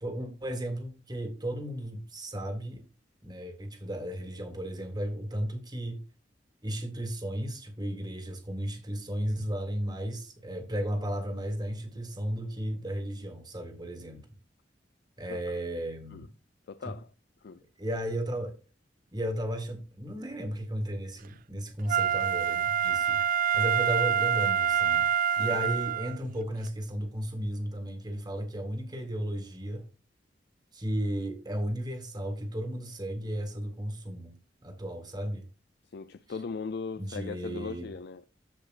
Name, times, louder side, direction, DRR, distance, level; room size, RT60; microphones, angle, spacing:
voice 1, 0.0-2.8 3.2-6.0 6.6-14.2 15.2-16.3 16.8-17.0 17.8-18.5 19.1-23.2 23.5-25.1 25.4-29.9 30.7-34.3 34.6-35.5 37.0-37.9, right 1 dB, 25° right, 1.9 m, -34 dB
voice 2, 16.7-17.1 17.4-17.6 25.5-25.6 35.9-38.3, left 5 dB, 60° left, 0.4 m, -38 dB
Wind instrument woodwind instrument, 21.9-26.2 26.7-26.8, right 8 dB, 50° right, 0.3 m, -26 dB
13.5 x 5.0 x 2.5 m
head